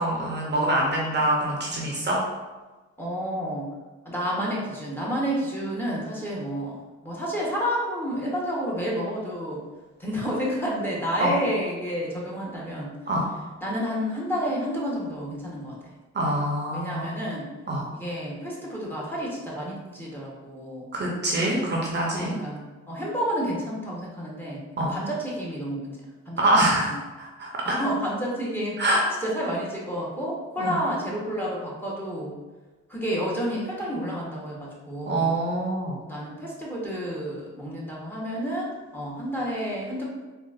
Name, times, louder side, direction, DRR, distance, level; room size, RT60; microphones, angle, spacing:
voice 1, 0.0-2.2 11.2-11.4 13.1-13.3 16.1-17.0 17.7-17.9 20.9-22.3 24.8-24.9 26.4-27.8 28.8-29.0 30.6-30.7 35.1-36.0, right 1 dB, 35° right, -3 dB, 0.6 m, -25 dB
voice 2, 3.0-3.7 4.0-9.6 10.0-12.9 13.6-15.7 16.7-17.5 17.9-20.9 22.1-24.6 24.9-26.0 26.3-26.4 26.7-26.9 27.6-28.8 29.2-32.3 32.9-35.3 36.0-40.0, equal, 5° left, -5 dB, 0.9 m, -30 dB
3.8 x 2.4 x 2.4 m, 1.2 s
cardioid pair, 90°, 30 cm